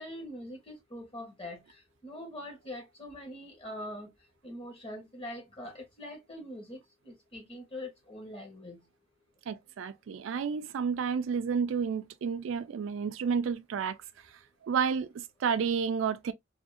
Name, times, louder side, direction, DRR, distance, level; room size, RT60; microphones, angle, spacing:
voice 1, 0.0-1.6 2.0-4.1 4.4-8.8, left 1 dB, 30° left, 1.2 m, -43 dB
voice 2, 9.5-14.0 14.6-16.3, right 6 dB, 80° right, 0.3 m, -31 dB
2.7 x 2.5 x 2.4 m
head